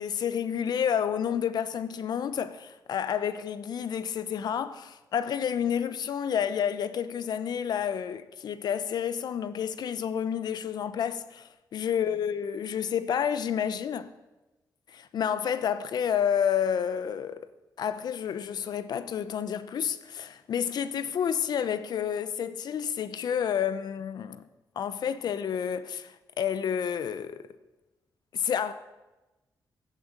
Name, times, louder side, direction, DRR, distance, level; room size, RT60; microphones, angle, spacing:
voice 1, 0.0-14.1 14.9-17.5 17.8-24.4 24.8-27.5 28.3-28.7, left 8 dB, 75° left, 0.8 m, -30 dB
15.5 x 9.2 x 8.0 m
wide cardioid pair, 135°, 7 cm